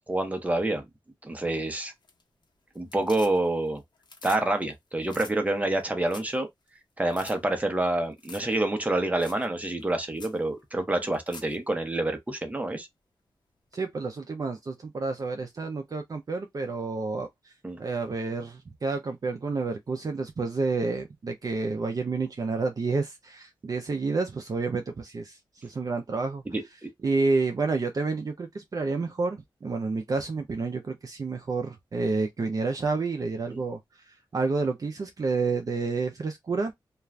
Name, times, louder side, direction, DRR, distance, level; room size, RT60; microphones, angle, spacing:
voice 1, 0.1-0.9 1.2-1.9 2.7-3.8 4.2-6.5 7.0-12.9 17.6-17.8 26.5-26.9 33.5-33.6, right 2 dB, 15° right, 0.8 m, -27 dB
sound 1, 1.9-2.4 2.7-3.7 4.0-4.4 4.7-4.8 5.1-5.3 5.8-5.9 6.1-6.4 6.7-6.8 7.1-7.4 8.2-8.5 8.8-8.9 9.2-9.5 9.8-9.9 10.2-10.4 11.0-11.6 13.7-13.8, left 4 dB, 60° left, 0.9 m, -46 dB
voice 2, 13.7-17.5 17.8-26.4 27.0-36.7, right 3 dB, 45° right, 0.5 m, -29 dB
2.4 x 2.3 x 3.1 m
wide cardioid pair, 95°, 8 cm